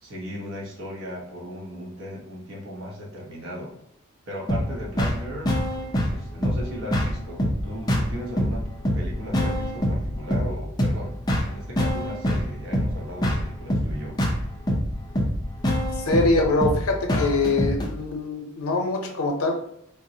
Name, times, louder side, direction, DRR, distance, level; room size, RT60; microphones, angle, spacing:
voice 1, 0.0-3.7 4.3-5.6 6.1-14.2, equal, 70° right, -2 dB, 0.8 m, -36 dB
sound 1, 4.5-17.9, equal, 20° left, 0.4 m, -25 dB
voice 2, 16.1-19.6, left 2 dB, 90° left, 3 dB, 0.5 m, -23 dB
3.6 x 2.0 x 2.6 m, 0.75 s
head